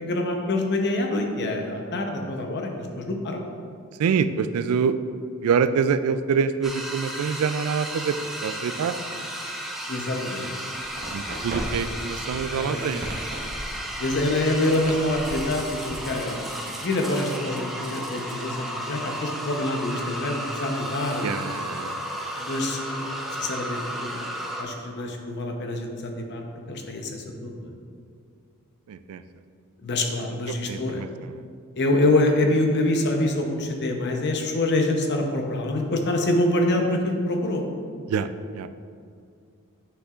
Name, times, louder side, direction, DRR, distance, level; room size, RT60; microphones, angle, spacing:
voice 1, 0.1-3.4 9.9-10.4 12.5-12.9 14.0-16.5 16.8-21.3 22.4-23.0 23.4-24.2 24.6-27.7 29.8-31.0 31.8-37.6, left 2 dB, 50° left, 3 dB, 0.7 m, -26 dB
voice 2, 4.0-5.0 5.4-8.2 8.4-9.3 11.1-13.1 21.2-22.0 28.9-29.2 30.7-31.1 38.1-38.3 38.5-38.7, right 6 dB, 70° right, 12 dB, 0.3 m, -25 dB
sound 1, 6.6-24.6, equal, ahead, 0.6 m, -34 dB
sound 2, 10.8-16.1, right 1 dB, 45° right, 1.0 m, -37 dB
7.9 x 6.6 x 2.4 m, 2.3 s
head